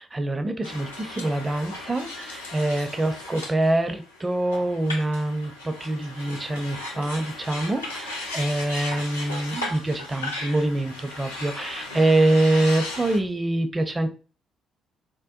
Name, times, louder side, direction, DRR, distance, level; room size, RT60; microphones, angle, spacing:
voice 1, 0.0-14.1, right 2 dB, 25° right, 8 dB, 0.5 m, -25 dB
sound 1, 0.6-13.2, left 2 dB, 85° left, 0.5 m, -36 dB
3.8 x 2.1 x 2.5 m, 0.37 s
figure-of-eight pair, 45°, 0 cm